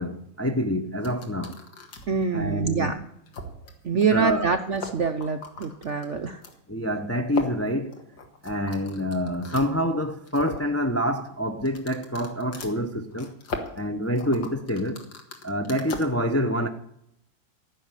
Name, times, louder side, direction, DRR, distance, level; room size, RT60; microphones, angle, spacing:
voice 1, 0.0-1.6 2.3-3.0 3.9-4.5 6.7-8.0 8.4-13.3 13.8-15.0 15.4-16.7, equal, 25° left, 0.3 m, -27 dB
sound 1, 1.0-2.2 2.7-2.8 3.3-3.7 4.0-4.1 4.3-4.4 4.7-6.5 7.3-9.7 10.1-10.7 11.6-16.1, left 4 dB, 70° left, 2.5 m, -38 dB
voice 2, 2.1-3.0 3.8-6.4, right 5 dB, 60° right, 0.7 m, -25 dB
15.0 x 6.6 x 9.9 m
omnidirectional pair, 2.1 m